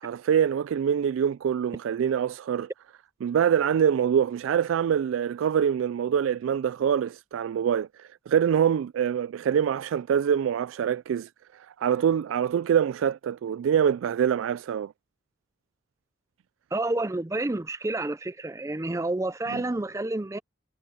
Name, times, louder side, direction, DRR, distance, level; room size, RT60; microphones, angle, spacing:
voice 1, 0.0-2.7 3.2-14.9 19.5-19.6, right 8 dB, 90° right, 0.3 m, -25 dB
voice 2, 16.7-20.4, right 2 dB, 15° right, 0.4 m, -29 dB
head